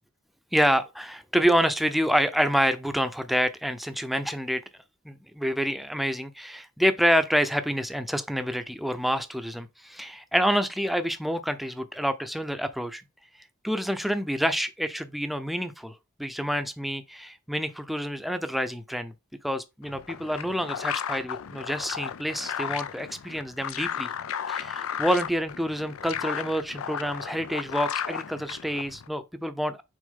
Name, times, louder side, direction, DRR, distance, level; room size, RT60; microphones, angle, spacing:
voice 1, 0.5-4.6 5.0-13.0 13.6-15.9 16.2-19.1 19.4-24.1 24.5-29.8, equal, ahead, 0.6 m, -27 dB
sound 1, 19.8-29.1, left 8 dB, 80° left, 0.5 m, -34 dB
6.4 x 4.1 x 3.7 m
head